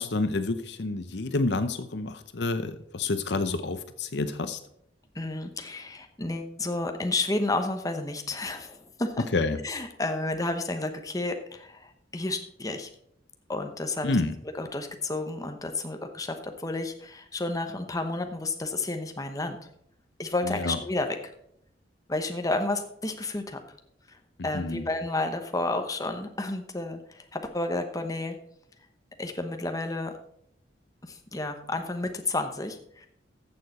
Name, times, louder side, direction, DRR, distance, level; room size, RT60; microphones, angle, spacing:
voice 1, 0.0-4.6 9.3-9.6 14.0-14.4 20.4-20.8 24.5-24.9, left 3 dB, 70° left, 10 dB, 0.7 m, -28 dB
voice 2, 5.1-9.2 9.6-12.9 13.5-14.2 14.6-19.6 20.2-21.1 22.1-23.6 24.1-24.2 24.4-28.4 29.2-30.1 31.0-33.1, left 2 dB, 20° left, 6 dB, 0.9 m, -31 dB
14.5 x 6.8 x 4.2 m, 0.71 s
head